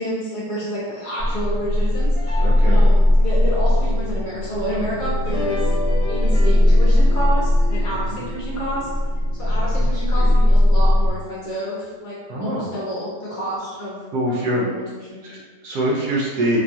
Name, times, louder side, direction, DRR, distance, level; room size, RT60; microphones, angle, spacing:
voice 1, 0.0-5.6 6.1-8.9 9.3-14.0 14.3-15.2, equal, 65° left, -6 dB, 1.0 m, -29 dB
sound 1, 1.2-11.1, left 1 dB, 45° right, 1.1 m, -18 dB
sound 2, 2.1-3.3 5.1-9.5 10.0-10.1 10.9-11.0 11.8-11.9, left 2 dB, 45° left, 1.3 m, -34 dB
voice 2, 2.4-2.8 9.5-9.9 10.2-10.3 12.3-12.7 14.1-14.6 15.2-16.6, right 1 dB, 70° right, -4 dB, 1.0 m, -24 dB
3.0 x 2.3 x 2.6 m, 1.4 s
omnidirectional pair, 1.9 m